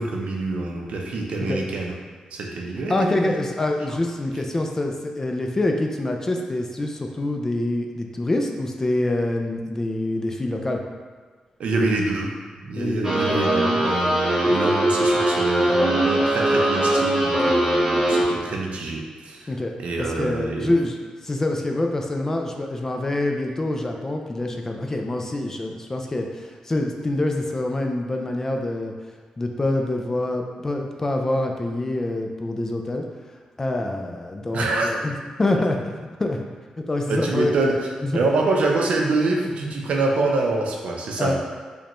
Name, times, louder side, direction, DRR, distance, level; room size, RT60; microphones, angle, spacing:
voice 1, 0.0-1.9 2.3-3.3 11.6-12.3 12.5-19.5 19.8-20.7 34.5-34.9 37.1-37.8 38.1-41.3, right 3 dB, 70° right, 0 dB, 0.6 m, -25 dB
voice 2, 2.9-10.8 12.8-13.4 19.5-19.7 20.0-21.0 21.2-28.9 29.4-33.0 33.6-35.9 36.2-36.4 36.8-37.5 38.0-38.2 41.2-41.3, left 2 dB, 20° left, 2 dB, 0.3 m, -25 dB
sound 1, 13.0-18.2, right 1 dB, 15° right, 0.9 m, -20 dB
5.0 x 2.2 x 3.0 m, 1.5 s
wide cardioid pair, 130°, 2 cm